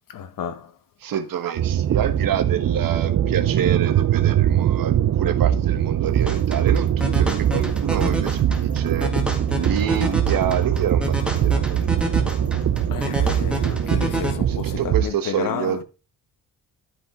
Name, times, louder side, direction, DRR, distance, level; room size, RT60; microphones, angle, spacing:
voice 1, 0.1-0.8 12.9-15.8, left 8 dB, 65° left, 1.2 m, -31 dB
voice 2, 1.0-9.1 9.6-11.8 14.5-15.8, right 9 dB, 70° right, 1.2 m, -27 dB
sound 1, 1.6-15.1, right 10 dB, 50° right, 0.5 m, -22 dB
sound 2, 5.9-13.8, equal, 20° left, 4.7 m, -43 dB
sound 3, 6.3-14.3, equal, 5° right, 1.8 m, -29 dB
13.0 x 5.0 x 3.7 m
cardioid pair, 130°, 36 cm